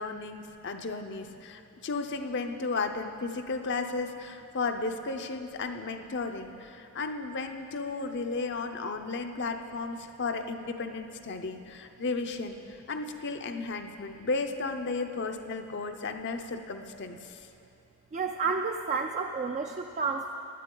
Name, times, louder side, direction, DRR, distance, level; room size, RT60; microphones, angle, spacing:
voice 1, 0.0-17.4, left 3 dB, 50° left, 6 dB, 0.6 m, -34 dB
voice 2, 18.1-20.3, right 5 dB, 30° right, 3 dB, 0.3 m, -30 dB
16.0 x 10.5 x 3.8 m, 2.7 s
head